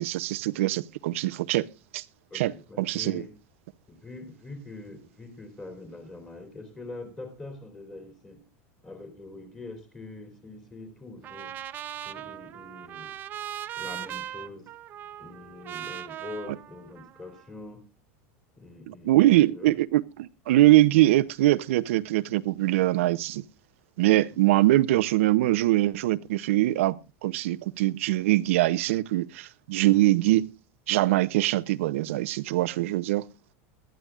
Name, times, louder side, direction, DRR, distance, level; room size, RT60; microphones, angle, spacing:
voice 1, 0.0-1.7 1.9-2.0 2.3-2.5 2.8-3.3 18.9-23.4 24.0-30.5 30.9-33.3, right 16 dB, 80° right, 0.6 m, -23 dB
voice 2, 2.3-3.3 3.9-8.4 8.8-11.5 12.0-13.2 13.8-14.7 15.2-17.9 18.5-19.2 19.5-19.7 24.3-24.4, left 2 dB, 15° left, 3.0 m, -43 dB
Trumpet, 11.2-17.5, right 11 dB, 25° right, 0.7 m, -39 dB
20.0 x 12.5 x 2.4 m
supercardioid pair, 165°, 7 cm